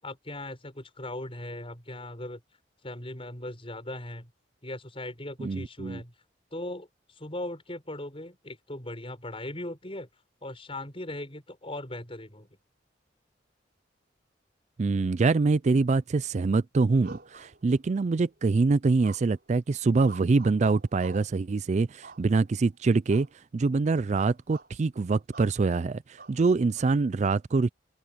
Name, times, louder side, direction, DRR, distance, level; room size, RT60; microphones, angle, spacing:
voice 1, 0.0-2.4 2.8-4.3 4.6-6.1 6.5-10.1 10.4-12.5, left 1 dB, 30° left, 6.8 m, -39 dB
voice 2, 5.4-6.0 14.8-23.3 23.5-27.7, right 3 dB, 40° right, 0.4 m, -25 dB
sound 1, 17.0-18.0 19.0-19.5 19.9-21.4 22.0-22.6 23.1-23.3 23.6-23.8 24.1-24.7 25.3-25.6 26.2-26.9, right 3 dB, 60° right, 5.7 m, -47 dB
open air
head